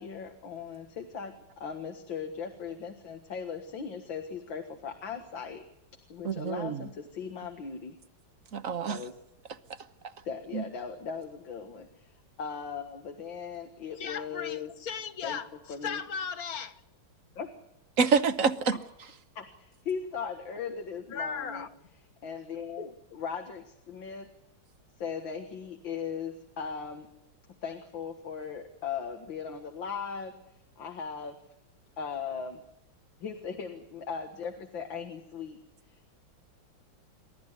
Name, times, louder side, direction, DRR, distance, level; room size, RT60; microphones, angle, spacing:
voice 1, 0.0-5.6 6.1-8.0 8.9-9.1 10.3-14.7 15.2-15.4 15.7-16.0 17.4-17.5 19.4-21.7 22.2-24.3 25.0-27.1 27.6-30.3 30.8-31.4 32.0-32.6 33.2-35.6 35.9-36.1, left 6 dB, 75° left, 2.4 m, -38 dB
voice 2, 6.2-6.8 8.5-9.0 10.5-10.6 18.0-18.8, right 5 dB, 50° right, 1.2 m, -26 dB
voice 3, 14.0-16.8 21.1-21.7 22.8-22.9, left 6 dB, 50° left, 1.6 m, -37 dB
28.5 x 13.5 x 9.6 m
omnidirectional pair, 2.1 m